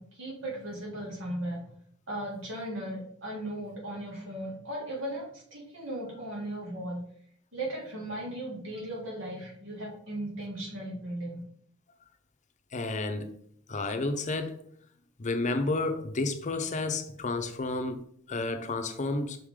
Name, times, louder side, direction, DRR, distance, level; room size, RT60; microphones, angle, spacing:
voice 1, 0.0-1.6 2.1-7.0 7.5-11.4, right 1 dB, 70° right, 2.2 m, -37 dB
voice 2, 12.7-13.3 13.7-14.6 15.2-19.4, left 2 dB, 35° left, 0.7 m, -31 dB
5.9 x 4.9 x 3.7 m
head